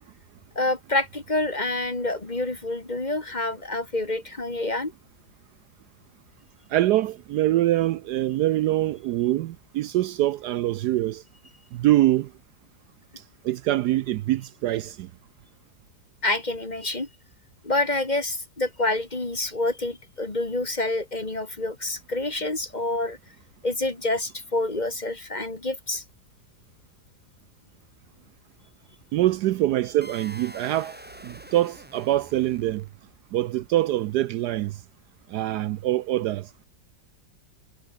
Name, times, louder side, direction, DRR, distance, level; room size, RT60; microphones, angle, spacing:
voice 1, 0.6-4.9 16.2-17.1 17.6-23.2 23.6-26.0, left 2 dB, 25° left, 2.3 m, -27 dB
voice 2, 6.7-11.2 11.7-12.3 13.4-15.1 29.1-31.0 31.2-32.8 33.3-34.8 35.3-36.5, right 14 dB, 75° right, 1.1 m, -24 dB
sound 1, 30.0-33.2, equal, 5° right, 3.1 m, -45 dB
omnidirectional pair, 1.9 m